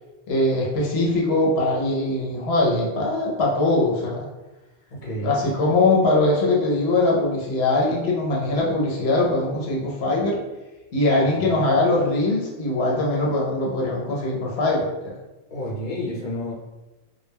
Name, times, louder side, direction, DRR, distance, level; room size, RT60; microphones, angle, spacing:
voice 1, 0.3-4.3 5.2-10.4 10.9-15.1, left 2 dB, 80° left, -3 dB, 0.8 m, -21 dB
voice 2, 4.9-5.4 11.2-11.8 15.5-16.5, equal, 40° left, -4 dB, 0.7 m, -31 dB
2.2 x 2.1 x 3.3 m, 1.1 s
omnidirectional pair, 1.1 m